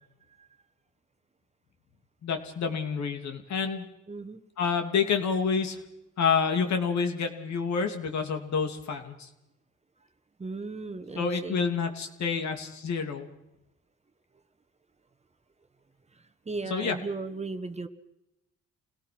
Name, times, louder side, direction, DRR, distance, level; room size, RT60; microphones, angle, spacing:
voice 1, 2.2-3.9 4.6-5.8 6.2-9.3 11.1-13.3 16.7-17.0, left 6 dB, 65° left, 5 dB, 3.0 m, -28 dB
voice 2, 4.1-4.4 10.4-11.6 16.5-17.9, right 3 dB, 20° right, 8 dB, 1.4 m, -36 dB
28.0 x 17.5 x 6.1 m, 0.90 s
cardioid pair, 90°, 30 cm